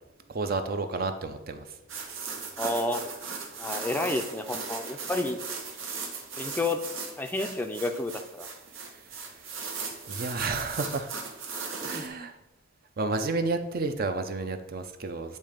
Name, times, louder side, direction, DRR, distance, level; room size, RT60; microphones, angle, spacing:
voice 1, 0.3-1.7 9.2-9.3 10.1-11.1 11.8-12.4 13.0-15.4, right 3 dB, 50° right, 8 dB, 0.6 m, -31 dB
sound 1, 1.9-12.1, right 5 dB, 85° right, 1.2 m, -38 dB
voice 2, 2.6-3.0 3.6-5.4 6.4-6.8 7.2-8.5 11.8-12.0, left 2 dB, 10° left, 6 dB, 0.4 m, -30 dB
8.9 x 3.2 x 5.1 m, 0.92 s
head